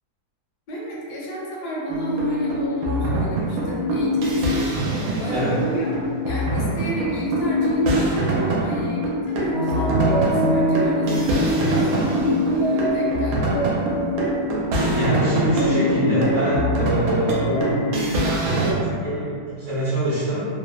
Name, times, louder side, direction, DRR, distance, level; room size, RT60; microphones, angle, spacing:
voice 1, 0.7-5.9 6.3-12.2 12.5-13.6, right 1 dB, 80° left, -5 dB, 1.2 m, -31 dB
sound 1, 1.9-18.7, equal, 80° right, 1.1 m, -23 dB
voice 2, 5.3-5.7 14.7-20.5, right 1 dB, 60° right, -13 dB, 0.9 m, -24 dB
sound 2, 9.5-14.5, right 1 dB, 60° left, 0.6 m, -24 dB
3.0 x 2.0 x 2.2 m, 2.2 s
omnidirectional pair, 1.7 m